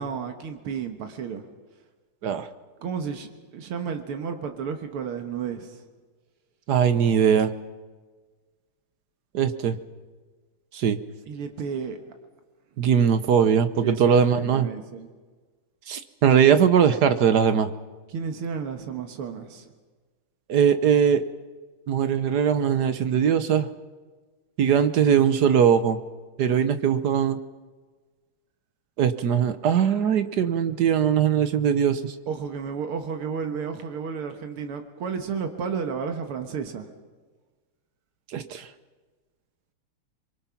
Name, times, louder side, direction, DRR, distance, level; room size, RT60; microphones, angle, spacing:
voice 1, 0.0-1.4 2.8-5.8 11.3-12.0 13.8-15.1 18.1-19.7 32.3-36.9, right 6 dB, 85° right, 5 dB, 2.3 m, -32 dB
voice 2, 6.7-7.5 9.3-9.8 10.7-11.0 12.8-14.7 15.9-17.7 20.5-21.2 21.9-23.7 24.6-26.0 26.4-27.4 29.0-32.1 38.3-38.7, right 8 dB, 60° right, 11 dB, 1.2 m, -20 dB
25.5 x 23.5 x 5.8 m, 1.4 s
omnidirectional pair, 2.4 m